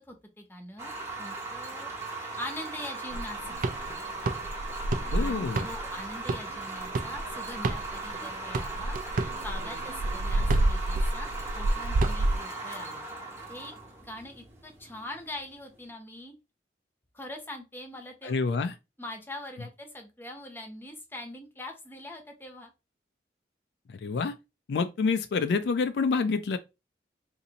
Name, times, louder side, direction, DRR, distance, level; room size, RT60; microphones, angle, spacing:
voice 1, 0.1-1.9 2.2-3.6 5.1-9.0 9.4-13.1 13.5-13.8 14.0-16.3 17.1-18.4 19.0-22.7, left 1 dB, 10° left, 0.7 m, -42 dB
sound 1, 0.8-15.7, right 3 dB, 15° right, 0.9 m, -38 dB
sound 2, 3.1-8.2 8.5-12.4, right 2 dB, 50° right, 0.3 m, -29 dB
voice 2, 5.1-5.7 18.2-18.7 23.9-24.4 24.7-26.6, left 4 dB, 65° left, 0.3 m, -27 dB
2.8 x 2.6 x 3.9 m
head